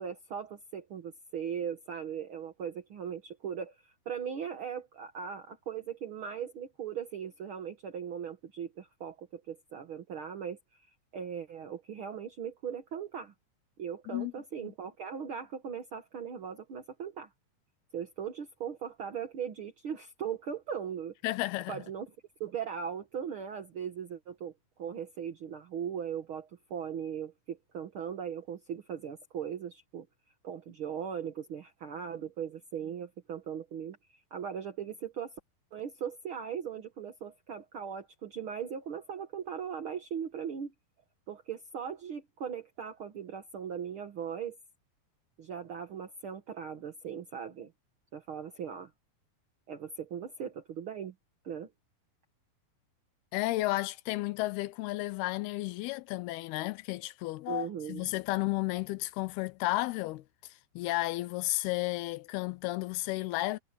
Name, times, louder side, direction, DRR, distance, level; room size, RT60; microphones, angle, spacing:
voice 1, 0.0-10.8 11.1-13.3 13.8-17.3 17.9-21.1 21.7-22.1 22.4-24.5 24.8-30.1 30.4-35.3 35.7-40.7 41.3-44.6 45.4-47.7 48.1-48.9 49.7-51.1 51.4-51.7 57.5-58.1, right 8 dB, 60° right, 1.4 m, -39 dB
voice 2, 21.2-21.8 53.3-60.2 60.8-63.6, left 19 dB, 85° left, 2.6 m, -33 dB
omnidirectional pair, 4.5 m